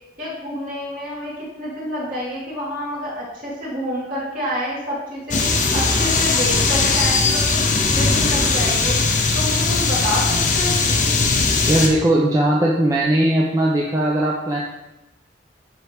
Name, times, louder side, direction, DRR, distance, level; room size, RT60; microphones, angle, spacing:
voice 1, 0.2-5.4 5.7-7.6 7.9-9.0 9.3-10.3 10.5-11.1, equal, 50° right, -6 dB, 2.8 m, -28 dB
sound 1, 5.3-11.9, left 3 dB, 45° left, 0.9 m, -19 dB
voice 2, 11.7-14.6, right 1 dB, 20° right, -3 dB, 0.7 m, -18 dB
9.7 x 4.6 x 3.5 m, 0.96 s
head